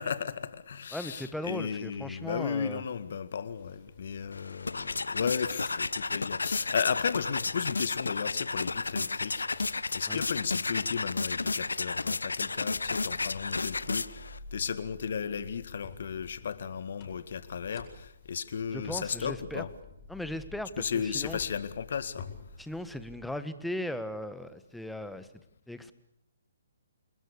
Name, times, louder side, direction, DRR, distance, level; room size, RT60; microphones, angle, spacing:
voice 1, 0.0-19.7 20.8-22.3, left 7 dB, 60° left, 2.0 m, -34 dB
voice 2, 0.9-2.8 10.1-10.2 18.7-19.7 20.1-21.4 22.6-25.3 25.7-25.9, left 1 dB, ahead, 1.5 m, -38 dB
sound 1, 3.5-23.4, left 4 dB, 25° left, 7.4 m, -51 dB
sound 2, 4.3-14.4, left 3 dB, 80° left, 0.9 m, -32 dB
28.0 x 21.0 x 6.9 m
figure-of-eight pair, 140°, 0 cm